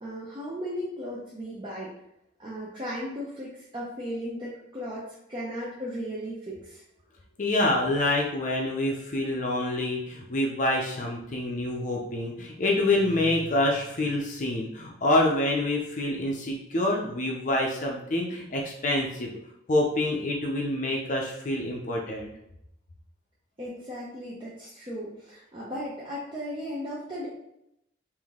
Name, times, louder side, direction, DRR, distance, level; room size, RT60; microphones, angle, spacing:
voice 1, 0.0-1.9 2.4-6.8 23.6-27.3, equal, 25° right, -7 dB, 0.6 m, -36 dB
voice 2, 7.4-19.3 19.7-22.3, left 1 dB, 40° left, -1 dB, 0.5 m, -27 dB
3.6 x 2.6 x 3.6 m, 0.82 s
head